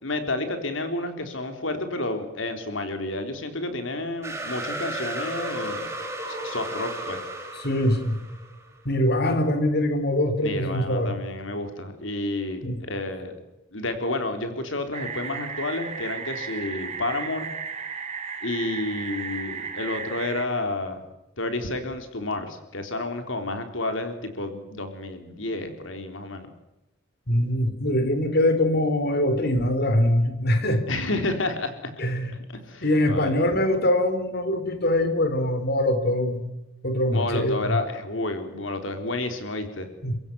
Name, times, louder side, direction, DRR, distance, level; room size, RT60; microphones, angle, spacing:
voice 1, 0.0-5.9 6.4-7.2 10.4-13.4 13.7-17.5 18.4-21.0 21.4-26.5 30.9-31.9 32.3-33.4 37.1-39.9, left 2 dB, 85° left, 7 dB, 3.9 m, -30 dB
sound 1, 4.2-8.7, right 1 dB, 15° right, 7.7 m, -34 dB
voice 2, 7.6-8.2 8.9-11.2 12.6-12.8 27.3-30.8 32.0-32.3 32.8-36.5 36.8-37.8 40.0-40.1, left 1 dB, 55° left, 8 dB, 3.7 m, -23 dB
sound 2, 14.9-20.5, right 6 dB, 35° right, 3.3 m, -34 dB
29.5 x 16.0 x 9.5 m, 0.94 s
head